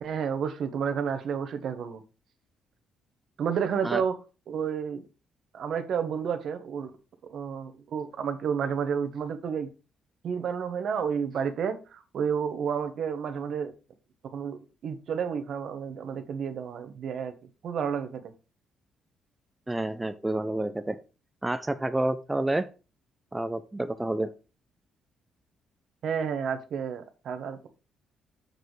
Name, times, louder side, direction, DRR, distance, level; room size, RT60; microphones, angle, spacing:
voice 1, 0.0-2.0 3.4-4.1 4.5-5.0 5.5-6.9 7.3-9.7 10.2-13.7 14.3-17.3 17.6-18.3 26.0-27.7, right 7 dB, 65° right, 1.1 m, -31 dB
voice 2, 19.7-21.0 21.4-22.7 23.3-24.3, right 1 dB, 15° right, 0.5 m, -29 dB
6.6 x 6.4 x 3.3 m
cardioid pair, 90°, 0 cm